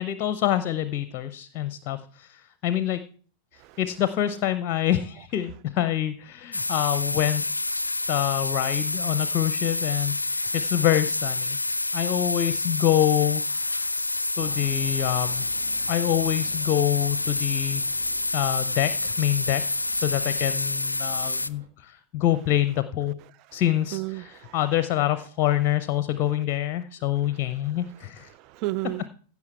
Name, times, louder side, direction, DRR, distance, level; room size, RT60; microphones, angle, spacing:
voice 1, 0.0-3.0 3.8-7.5 8.1-11.6 11.9-13.9 14.4-15.5 15.9-18.0 18.3-23.1 23.5-28.3, left 12 dB, 40° left, 0.6 m, -26 dB
sound 1, 6.5-21.5, left 2 dB, 80° left, 0.4 m, -28 dB
sound 2, 14.4-21.7, right 4 dB, 60° right, 1.9 m, -49 dB
voice 2, 23.9-24.6 28.3-29.1, right 19 dB, 40° right, 0.4 m, -33 dB
15.5 x 6.1 x 4.4 m
figure-of-eight pair, 90°, 0 cm